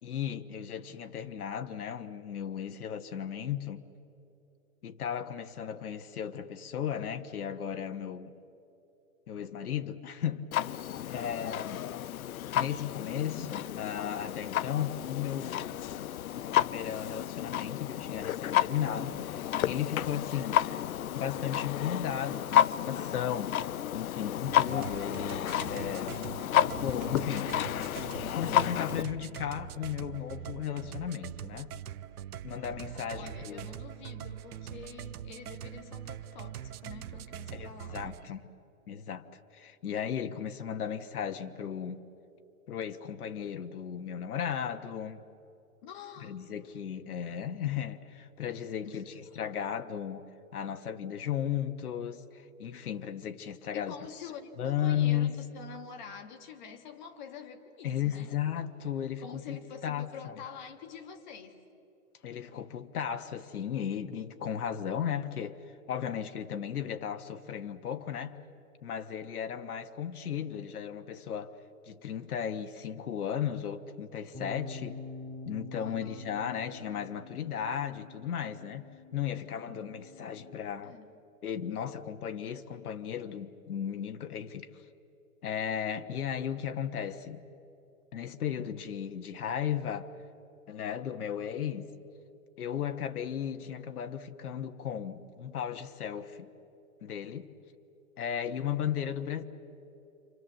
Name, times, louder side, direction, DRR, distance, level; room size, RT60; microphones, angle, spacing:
voice 1, 0.0-3.8 4.8-8.3 9.3-10.5 11.0-11.8 12.5-16.1 16.3-20.6 21.1-26.2 26.7-27.5 28.3-31.7 32.4-33.7 37.5-38.4 38.9-39.3 39.5-42.0 42.7-45.2 46.2-50.2 50.5-53.9 54.6-55.3 57.8-60.3 62.2-68.4 68.8-71.6 71.9-75.0 75.5-81.0 81.4-84.7 85.4-87.4 88.1-90.1 90.7-91.9 92.6-96.5 97.0-97.5 98.2-99.4, left 9 dB, 90° left, 1.3 m, -35 dB
Clock, 10.5-29.0, left 11 dB, 70° left, 0.7 m, -31 dB
voice 2, 11.1-11.6 33.1-38.1 45.8-46.4 48.9-49.0 53.7-58.3 59.2-61.6 75.8-76.4 80.8-81.1, left 7 dB, 30° left, 1.7 m, -47 dB
sound 1, 24.4-38.3, right 10 dB, 90° right, 0.9 m, -43 dB
sound 2, 74.3-80.6, left 3 dB, 10° left, 5.1 m, -46 dB
28.0 x 26.0 x 7.5 m
hypercardioid pair, 170°, 43 cm